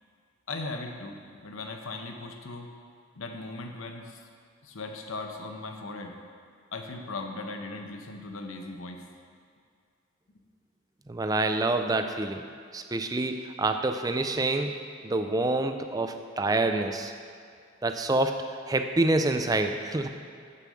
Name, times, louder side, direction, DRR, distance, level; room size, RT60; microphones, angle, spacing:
voice 1, 0.5-2.7 3.1-4.2 4.6-6.2 6.7-9.0 20.0-20.1, left 3 dB, 80° left, 4 dB, 0.9 m, -38 dB
voice 2, 11.1-12.4 12.7-17.1 17.8-20.1, right 2 dB, 20° right, 7 dB, 0.4 m, -27 dB
7.0 x 6.8 x 6.3 m, 2.3 s
head